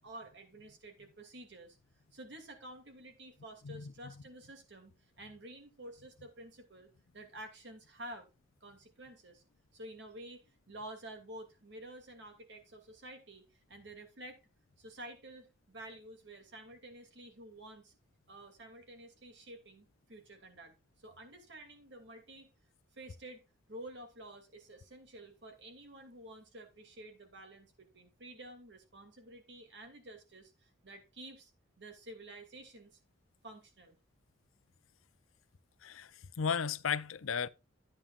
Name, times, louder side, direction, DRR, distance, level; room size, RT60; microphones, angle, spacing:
voice 1, 0.0-1.8 2.1-4.9 5.2-6.9 7.1-8.3 8.6-9.4 9.7-14.4 14.8-17.9 18.3-20.7 21.0-22.5 22.9-23.4 23.7-31.5 31.8-33.0 33.4-34.0, right 1 dB, 55° right, 2.6 m, -50 dB
voice 2, 3.6-4.1 35.8-37.5, left 6 dB, 80° left, 0.6 m, -35 dB
13.0 x 8.7 x 2.5 m
head